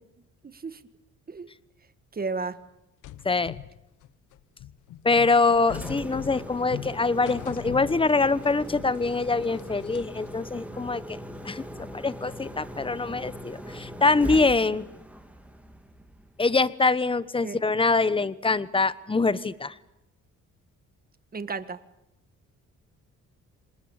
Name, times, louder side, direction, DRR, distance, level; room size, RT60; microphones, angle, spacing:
voice 1, 0.4-0.8 1.3-1.5 2.1-2.6 17.4-17.6 21.3-21.8, right 4 dB, 30° right, 12 dB, 1.7 m, -33 dB
sound 1, 3.0-8.5 8.7-10.3, left 12 dB, 80° left, 0.9 m, -41 dB
voice 2, 5.0-11.2 11.4-11.6 11.9-14.8 16.4-19.7, left 3 dB, 15° left, 16 dB, 1.2 m, -24 dB
Engine, 5.5-16.5, equal, 5° right, 2.5 m, -40 dB
27.5 x 19.5 x 8.8 m, 0.90 s
cardioid pair, 90°, 30 cm